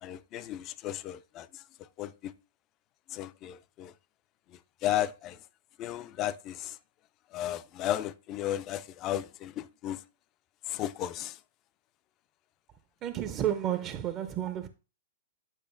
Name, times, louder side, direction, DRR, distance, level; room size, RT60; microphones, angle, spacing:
voice 1, 0.0-1.6 2.0-2.3 3.1-3.9 4.8-5.4 5.8-6.8 7.3-10.0 10.7-11.4, left 12 dB, 35° left, 0.4 m, -34 dB
voice 2, 13.0-14.7, right 11 dB, 30° right, 0.5 m, -31 dB
9.0 x 5.0 x 2.5 m
hypercardioid pair, 115°, 0 cm